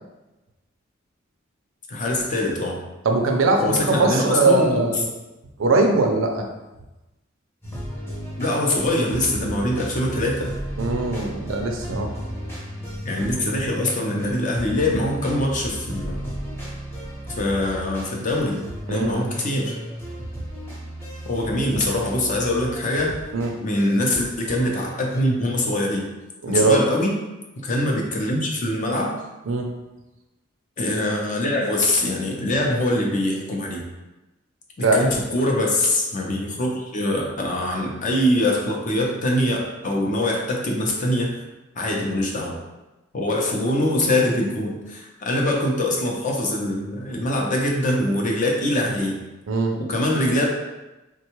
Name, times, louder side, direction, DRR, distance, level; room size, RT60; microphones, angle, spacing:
voice 1, 1.9-2.8 3.6-4.9 8.4-10.5 13.0-16.2 17.4-19.7 21.3-23.2 23.6-26.1 26.5-27.2 27.6-29.2 30.8-33.8 34.8-41.4 41.8-42.5 43.1-49.2 49.8-50.4, left 1 dB, 40° left, -1 dB, 0.6 m, -23 dB
voice 2, 3.0-5.1 5.6-6.5 10.8-12.1 18.9-19.2 23.3-23.5 26.4-26.8 29.5-29.7 34.8-35.0 47.1-47.2 49.5-49.7, right 3 dB, 75° right, 3 dB, 0.5 m, -21 dB
sound 1, 7.6-25.2, right 1 dB, 10° left, 0.8 m, -34 dB
3.5 x 2.2 x 2.9 m, 1.1 s
head